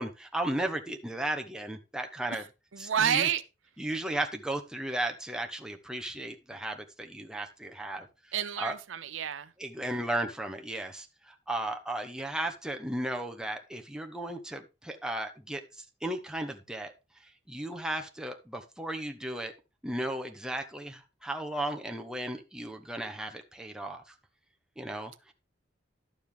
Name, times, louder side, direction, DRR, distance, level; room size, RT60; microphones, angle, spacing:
voice 1, 0.0-2.4 2.8-3.3 3.8-8.1 8.6-8.7 9.6-16.9 17.5-19.5 19.8-24.0 24.8-25.3, right 1 dB, 5° right, 1.0 m, -35 dB
voice 2, 2.7-3.4 8.3-9.5, right 8 dB, 85° right, 0.6 m, -29 dB
11.5 x 7.1 x 3.5 m
head